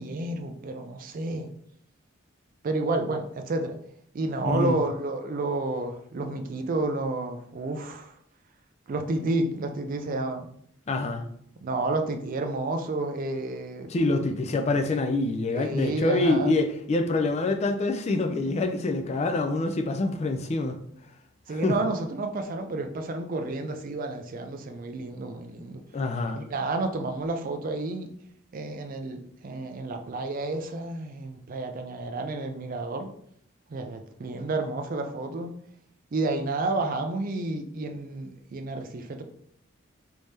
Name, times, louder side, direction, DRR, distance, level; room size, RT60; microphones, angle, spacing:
voice 1, 0.0-1.5 2.6-3.8 4.1-8.1 8.9-10.5 11.6-13.9 15.5-16.5 21.5-25.8 26.4-28.1 28.5-33.1 33.7-35.5 36.1-39.2, right 2 dB, 40° right, 0.4 m, -30 dB
voice 2, 4.4-4.8 10.9-11.2 13.9-20.8 21.5-21.7 25.9-26.5, left 2 dB, 30° left, 0.3 m, -26 dB
3.4 x 2.7 x 3.2 m
head